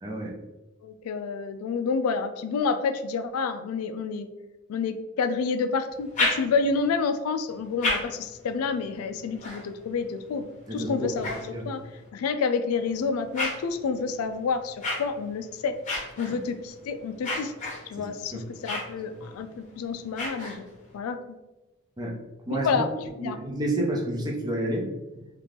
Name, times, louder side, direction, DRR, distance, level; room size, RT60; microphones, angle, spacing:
voice 1, 0.0-0.3 10.7-11.2 11.5-11.6 16.3-16.4 18.0-18.5 19.1-19.2 22.0-22.2 22.5-22.7 23.2-24.9, right 1 dB, 20° right, -1 dB, 0.5 m, -30 dB
voice 2, 0.8-4.3 4.7-10.5 10.7-11.8 12.1-15.8 16.2-17.5 17.9-20.6 20.9-21.2 22.6-22.9 23.1-23.4, left 5 dB, 85° left, 9 dB, 0.3 m, -29 dB
sound 1, 5.9-6.9 7.5-12.1 12.7-21.0, left 2 dB, 35° left, 0.8 m, -35 dB
2.8 x 2.4 x 3.4 m, 1.0 s
head